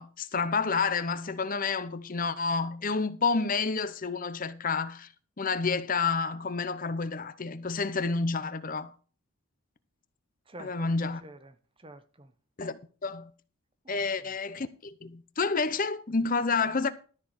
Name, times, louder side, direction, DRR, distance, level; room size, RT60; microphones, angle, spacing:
voice 1, 0.0-5.1 5.4-8.9 10.6-11.2 12.6-13.3 13.9-16.9, left 4 dB, 40° left, 0.7 m, -29 dB
voice 2, 10.5-12.3 13.8-14.4, right 2 dB, 25° right, 0.9 m, -49 dB
13.0 x 4.7 x 8.2 m
head